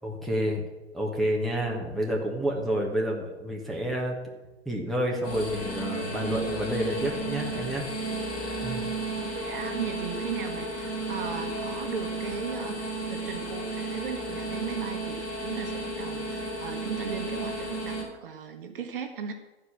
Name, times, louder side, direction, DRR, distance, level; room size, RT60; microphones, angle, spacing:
voice 1, 0.0-0.6 0.9-4.1 4.6-7.8 8.6-8.8, equal, ahead, -3 dB, 1.3 m, -29 dB
sound 1, 5.2-18.0, right 1 dB, 25° left, 3.6 m, -33 dB
voice 2, 9.2-19.3, right 7 dB, 55° right, 6 dB, 1.3 m, -37 dB
14.0 x 5.0 x 7.3 m, 1.1 s
figure-of-eight pair, 125°, 33 cm